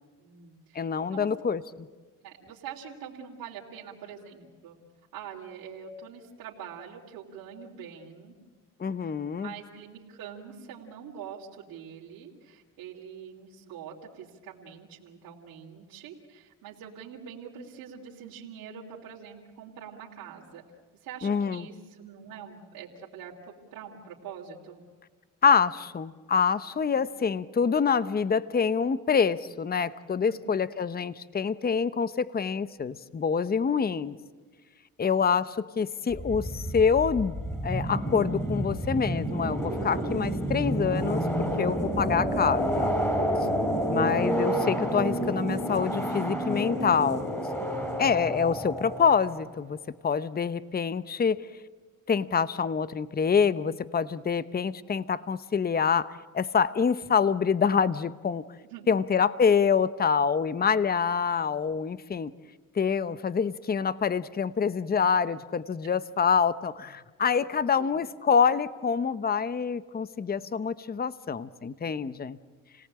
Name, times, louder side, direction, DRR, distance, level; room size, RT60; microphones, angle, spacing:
voice 1, 0.2-1.3 2.2-4.8 5.1-8.3 9.0-20.6 21.0-23.3 23.7-24.8 27.0-27.1 30.2-30.6 35.0-35.4 58.6-58.9 67.8-67.9, right 7 dB, 85° right, -4 dB, 3.3 m, -44 dB
voice 2, 0.7-1.9 8.8-9.5 21.2-21.7 25.4-34.1 35.0-37.3 37.6-41.2 41.6-43.0 43.9-47.2 48.0-49.8 50.0-51.4 52.1-58.4 58.9-62.3 62.7-72.4, left 6 dB, 25° left, 15 dB, 0.9 m, -26 dB
sound 1, 36.1-49.5, right 1 dB, 5° left, 5.8 m, -29 dB
29.5 x 18.5 x 8.8 m, 1.4 s
cardioid pair, 90°, 34 cm